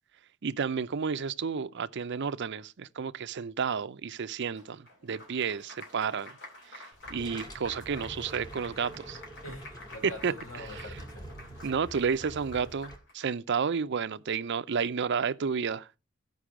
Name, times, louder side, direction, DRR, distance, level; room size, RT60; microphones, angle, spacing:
voice 1, 0.4-6.3 6.7-9.2 10.2-10.3 11.6-15.9, right 6 dB, 55° right, 0.5 m, -31 dB
Applause, 4.6-13.3, left 1 dB, 60° left, 3.2 m, -49 dB
sound 1, 6.9-13.0, right 1 dB, 20° left, 1.8 m, -46 dB
voice 2, 9.4-11.6, left 2 dB, 80° left, 4.6 m, -45 dB
15.0 x 5.4 x 4.9 m
head